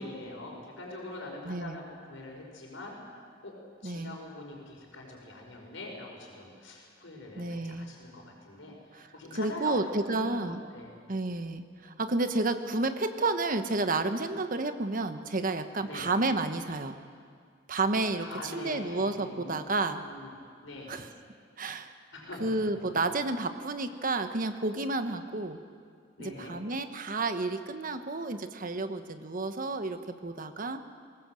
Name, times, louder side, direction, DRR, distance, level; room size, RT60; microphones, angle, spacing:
voice 1, 0.0-3.0 3.4-3.5 3.8-10.9 15.8-16.1 18.2-20.3 20.6-20.9 22.1-23.1 26.2-26.5, left 2 dB, 85° left, 0 dB, 5.2 m, -43 dB
voice 2, 1.4-1.8 3.8-4.2 7.4-7.9 8.9-9.0 9.3-10.6 11.1-17.0 17.7-20.0 20.9-21.1 21.6-21.9 22.4-25.6 26.2-30.8, right 2 dB, 45° right, 8 dB, 1.2 m, -31 dB
21.5 x 18.5 x 7.7 m, 2.1 s
head